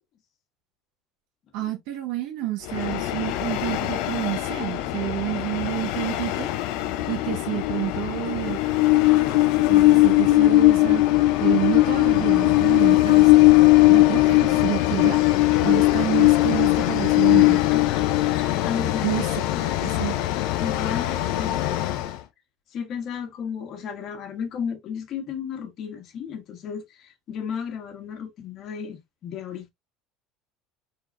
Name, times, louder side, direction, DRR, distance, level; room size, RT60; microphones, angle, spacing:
voice 1, 1.5-6.5 7.1-8.6 9.7-11.0 11.4-13.5 13.9-15.2 15.6-17.6 19.0-19.3 19.8-20.1, right 15 dB, 75° right, 1.3 m, -29 dB
Train, 2.7-22.2, left 17 dB, 75° left, 0.7 m, -20 dB
voice 2, 17.4-20.1 20.6-22.1 22.7-29.7, left 7 dB, 50° left, 1.6 m, -34 dB
4.8 x 3.9 x 2.6 m
supercardioid pair, 110°, 0 cm